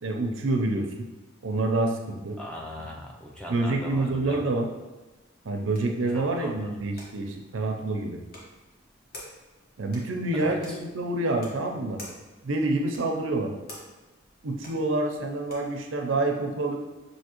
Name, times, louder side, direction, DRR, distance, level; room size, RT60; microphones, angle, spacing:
voice 1, 0.0-1.1 1.4-2.4 3.5-4.7 5.4-8.2 9.8-12.0 12.4-13.5 14.4-16.8, right 2 dB, 80° right, 3 dB, 0.6 m, -27 dB
voice 2, 2.4-4.5 6.1-6.7 10.3-10.8, left 1 dB, 5° left, -2 dB, 0.4 m, -40 dB
sound 1, 5.1-15.8, left 1 dB, 45° left, 1.1 m, -50 dB
6.4 x 2.8 x 3.0 m, 1.1 s
head